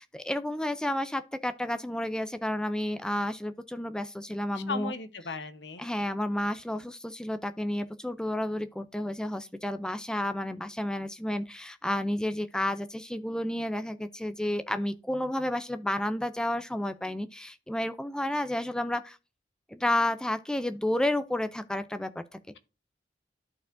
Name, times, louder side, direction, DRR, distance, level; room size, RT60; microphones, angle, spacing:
voice 1, 0.0-4.9 5.8-19.2 19.7-22.2, left 1 dB, 5° left, 0.3 m, -31 dB
voice 2, 4.5-5.8, left 4 dB, 80° left, 0.9 m, -36 dB
13.5 x 4.5 x 2.5 m
head